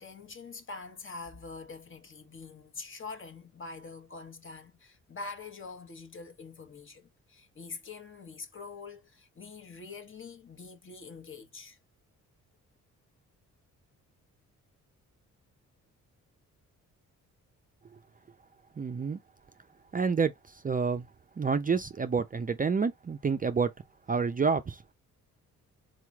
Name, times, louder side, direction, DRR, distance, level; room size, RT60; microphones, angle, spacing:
voice 1, 0.0-11.8, left 4 dB, 35° left, 1.1 m, -45 dB
voice 2, 18.8-19.2 19.9-20.3 20.6-21.1 21.4-23.7 24.1-24.9, right 5 dB, 25° right, 0.5 m, -28 dB
4.2 x 3.0 x 2.3 m
supercardioid pair, 60°, 34 cm